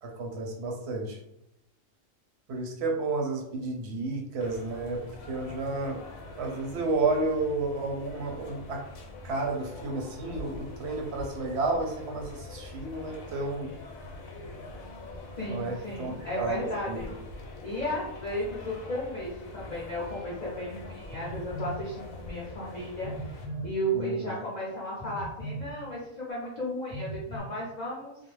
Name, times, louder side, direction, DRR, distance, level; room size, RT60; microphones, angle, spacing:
voice 1, 0.0-1.2 2.5-5.0 5.3-6.0 6.4-8.8 9.2-13.7 15.5-17.0 23.9-24.3, right 3 dB, 65° right, 1 dB, 0.8 m, -31 dB
sound 1, 4.4-23.5, left 2 dB, 90° left, 1.0 m, -44 dB
voice 2, 15.3-17.1 17.6-28.2, equal, 50° left, -6 dB, 0.5 m, -34 dB
Telephone, 21.1-21.8 23.0-23.7 25.0-25.7 26.9-27.4, right 2 dB, 15° right, 0.7 m, -37 dB
2.4 x 2.0 x 3.1 m, 0.81 s
omnidirectional pair, 1.4 m